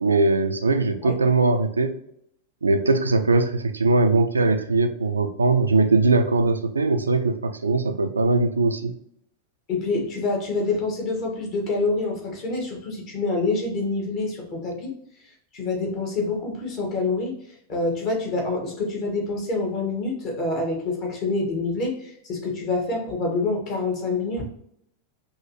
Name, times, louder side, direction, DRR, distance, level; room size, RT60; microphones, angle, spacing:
voice 1, 0.0-2.0 2.6-8.9, right 3 dB, 75° right, 7 dB, 0.4 m, -21 dB
voice 2, 9.7-14.9 15.5-17.4 17.7-24.4, left 3 dB, 40° left, 0 dB, 1.4 m, -26 dB
5.5 x 2.7 x 2.9 m, 0.71 s
figure-of-eight pair, 90°, 0 cm